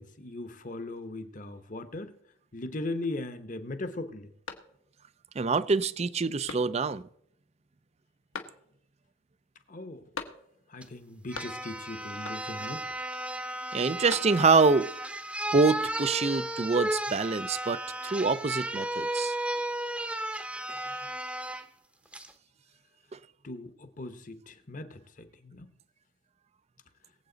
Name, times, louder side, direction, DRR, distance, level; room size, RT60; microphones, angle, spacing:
voice 1, 0.0-2.1 2.5-4.3 9.7-10.0 10.7-12.9 23.4-25.7, left 2 dB, 40° left, 1.1 m, -39 dB
sound 1, 4.4-5.1 5.6-5.7 6.4-7.1 8.3-9.0 10.1-10.8 11.0-11.8 12.2-12.7 13.7-14.7, left 4 dB, 85° left, 1.4 m, -43 dB
voice 2, 5.4-7.0 13.7-14.9 15.5-19.3, right 4 dB, 30° right, 0.4 m, -25 dB
sound 2, 10.8-10.9 11.3-21.6 22.1-22.3, right 1 dB, 5° right, 0.8 m, -34 dB
22.0 x 8.0 x 4.0 m
head